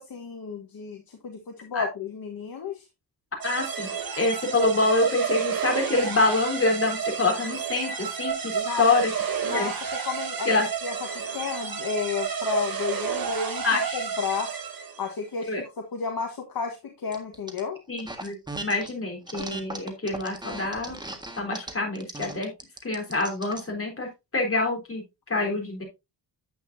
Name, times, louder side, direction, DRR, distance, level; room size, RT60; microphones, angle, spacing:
voice 1, 0.0-2.8 8.5-8.9 9.4-9.7 10.0-10.5 10.8-13.6 13.9-14.5 15.0-17.8, left 5 dB, 55° left, 3 dB, 1.5 m, -32 dB
voice 2, 3.4-8.5 8.8-9.1 9.5-9.7 10.5-10.7 13.6-14.0 15.5-15.6 17.9-21.0 21.4-22.5 22.8-25.8, left 3 dB, 30° left, 0 dB, 3.9 m, -26 dB
sound 1, 3.4-15.1, right 6 dB, 50° right, 2.2 m, -31 dB
sound 2, 17.1-17.6 18.0-18.9 19.3-23.7, right 2 dB, 10° right, 1.6 m, -37 dB
9.8 x 8.3 x 2.7 m, 0.23 s
wide cardioid pair, 120°, 43 cm